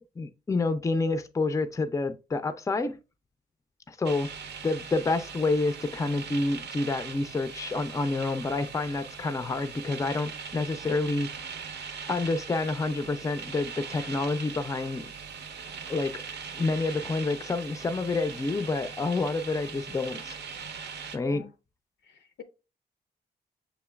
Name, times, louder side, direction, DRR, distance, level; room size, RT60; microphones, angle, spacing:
voice 1, 0.2-3.0 3.9-4.3 4.6-11.3 12.1-15.1 15.9-16.1 16.6-20.4 21.1-21.5, left 3 dB, 20° left, 0.4 m, -28 dB
sound 1, 4.0-21.2, right 6 dB, 75° right, 0.5 m, -41 dB
voice 2, 22.1-22.4, left 9 dB, 85° left, 0.5 m, -47 dB
6.6 x 3.0 x 2.2 m
cardioid pair, 75°, 18 cm